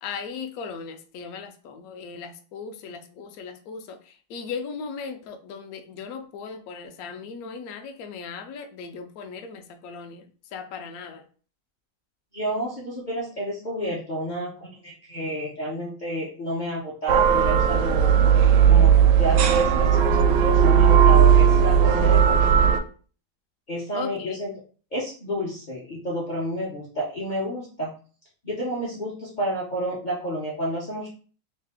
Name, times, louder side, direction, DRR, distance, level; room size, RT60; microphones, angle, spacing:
voice 1, 0.0-11.2 23.9-24.4, left 5 dB, 70° left, 6 dB, 0.8 m, -37 dB
voice 2, 12.3-18.1 18.6-18.9 19.2-22.5 23.7-24.5 24.9-27.9 28.4-31.1, equal, 55° left, -6 dB, 0.5 m, -30 dB
sound 1, 17.1-22.8, right 8 dB, 75° right, 1.1 m, -17 dB
3.3 x 2.8 x 3.4 m, 0.40 s
omnidirectional pair, 2.0 m